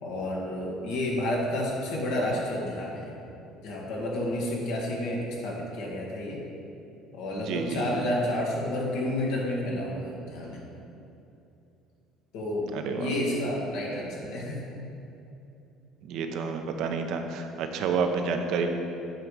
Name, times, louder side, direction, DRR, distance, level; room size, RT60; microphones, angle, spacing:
voice 1, 0.0-3.1 3.6-6.4 7.1-10.6 12.3-14.6, left 1 dB, 75° left, -3 dB, 1.6 m, -30 dB
voice 2, 7.4-8.0 12.7-13.1 16.1-18.7, right 5 dB, 65° right, 5 dB, 0.6 m, -29 dB
8.9 x 3.4 x 5.4 m, 2.8 s
supercardioid pair, 75°, 0 cm